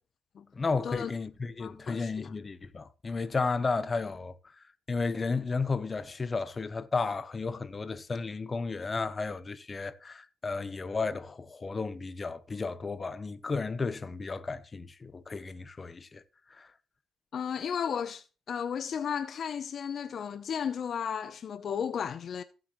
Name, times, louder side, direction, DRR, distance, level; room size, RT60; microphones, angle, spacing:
voice 1, 0.5-4.3 4.9-16.2 16.5-16.7, left 4 dB, 30° left, 0.9 m, -33 dB
voice 2, 1.6-2.3 17.3-22.4, left 7 dB, 55° left, 0.6 m, -34 dB
15.5 x 7.7 x 3.1 m
cardioid pair, 90°, 0 cm